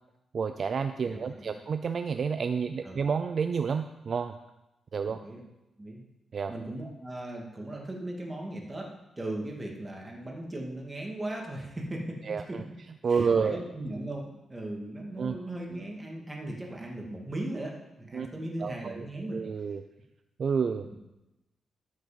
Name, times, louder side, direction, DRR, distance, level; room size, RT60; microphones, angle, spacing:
voice 1, 0.3-4.4 4.9-5.2 6.3-6.5 12.3-12.6 13.0-13.6 15.2-15.4 18.1-18.3 18.6-19.0 19.3-19.8 20.4-20.8, right 6 dB, 50° right, 8 dB, 0.5 m, -29 dB
voice 2, 1.0-1.6 2.8-3.0 5.1-5.4 5.8-6.0 6.5-12.6 13.1-19.4 20.8-21.0, right 1 dB, 20° right, -1 dB, 2.5 m, -38 dB
13.5 x 6.6 x 5.3 m, 0.97 s
cardioid pair, 100°, 0 cm